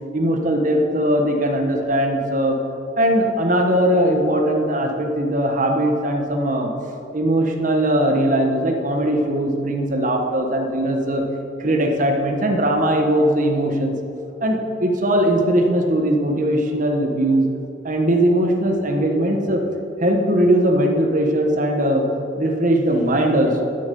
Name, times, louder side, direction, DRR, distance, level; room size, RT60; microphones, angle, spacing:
voice 1, 0.1-2.6 3.0-6.7 7.1-11.2 11.6-13.9 14.4-17.5 17.8-19.6 20.0-22.1 22.4-23.6, right 1 dB, 45° right, 3 dB, 1.4 m, -19 dB
12.0 x 10.0 x 5.4 m, 2.7 s
head